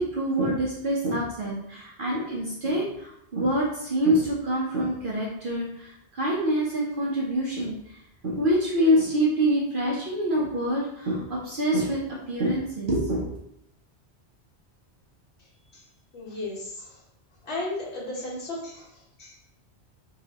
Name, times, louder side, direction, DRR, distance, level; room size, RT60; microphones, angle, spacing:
voice 1, 0.0-13.4, right 1 dB, 55° right, -4 dB, 1.0 m, -26 dB
voice 2, 16.1-16.6 17.5-18.8 19.2-19.3, left 2 dB, 70° left, -7 dB, 1.7 m, -33 dB
5.3 x 2.9 x 2.9 m, 0.75 s
omnidirectional pair, 1.1 m